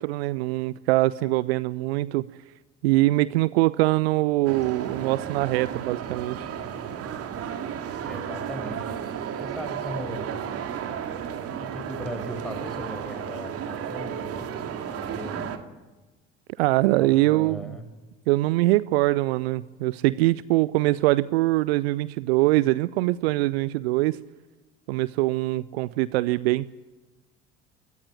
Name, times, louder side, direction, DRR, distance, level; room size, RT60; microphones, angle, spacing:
voice 1, 0.0-2.3 2.8-6.5 16.6-17.8 18.3-24.2 24.9-26.7, right 19 dB, 60° right, 19 dB, 0.6 m, -23 dB
sound 1, 4.4-15.6, right 8 dB, 45° right, 2.2 m, -33 dB
voice 2, 8.0-8.9 9.4-10.5 11.6-15.5 17.0-17.9, equal, ahead, 7 dB, 5.4 m, -38 dB
23.0 x 18.0 x 8.9 m, 1.2 s
figure-of-eight pair, 60°, 35 cm